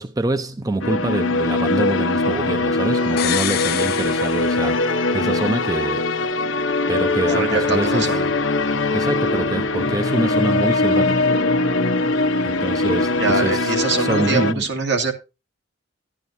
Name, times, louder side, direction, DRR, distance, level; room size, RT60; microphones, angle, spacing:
voice 1, 0.0-6.1 6.9-8.2 8.7-11.3 12.4-14.7, right 2 dB, 20° right, 0.6 m, -26 dB
sound 1, 0.8-14.5, left 2 dB, 90° left, 0.9 m, -21 dB
sound 2, 3.2-5.1 5.4-5.5, left 12 dB, 55° left, 0.4 m, -27 dB
voice 2, 7.2-8.3 13.2-15.1, right 4 dB, 65° right, 2.1 m, -23 dB
11.5 x 11.0 x 2.7 m
head